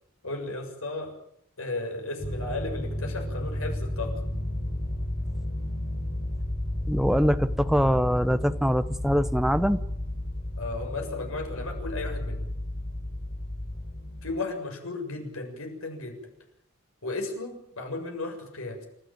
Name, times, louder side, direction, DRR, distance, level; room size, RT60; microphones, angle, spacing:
voice 1, 0.2-1.2 1.6-4.2 10.6-12.4 14.2-16.2 17.0-18.9, left 2 dB, 75° left, 3 dB, 7.0 m, -34 dB
sound 1, 2.2-14.3, left 1 dB, 45° left, 4.2 m, -32 dB
voice 2, 6.9-9.8, equal, ahead, 11 dB, 0.9 m, -23 dB
29.0 x 13.5 x 9.1 m, 0.76 s
head